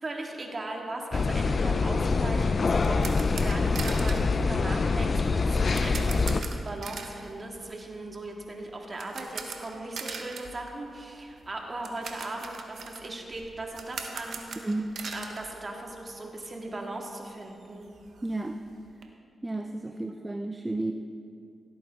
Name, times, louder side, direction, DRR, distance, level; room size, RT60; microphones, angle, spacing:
voice 1, 0.0-14.4 15.1-17.9 19.9-20.0, right 2 dB, 40° right, 1 dB, 2.0 m, -38 dB
sound 1, 1.1-6.4, left 4 dB, 55° left, 0.4 m, -25 dB
sound 2, 2.4-16.3 16.6-16.7 17.1-17.2 17.5-19.0, right 5 dB, 75° right, 1.0 m, -42 dB
voice 2, 18.2-18.5 19.4-20.9, right 2 dB, 20° right, 5 dB, 0.5 m, -32 dB
16.5 x 8.7 x 3.7 m, 2.4 s
cardioid pair, 50°, 0 cm